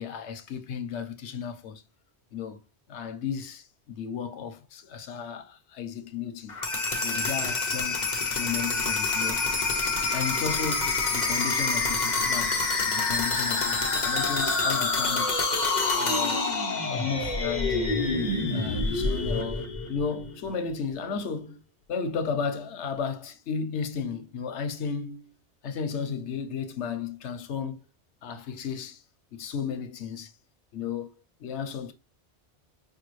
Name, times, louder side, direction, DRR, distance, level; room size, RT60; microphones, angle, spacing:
voice 1, 0.0-1.8 2.3-2.6 2.9-6.6 7.0-8.0 8.3-9.5 10.0-12.6 12.9-15.5 15.9-16.5 16.9-18.1 18.5-21.6 21.9-25.3 25.6-27.8 28.2-29.0 29.3-30.3 30.7-31.1 31.4-31.9, left 6 dB, 85° left, 1.0 m, -34 dB
sound 1, 6.5-20.3, left 3 dB, 45° left, 0.9 m, -27 dB
5.4 x 2.3 x 3.0 m
omnidirectional pair, 1.1 m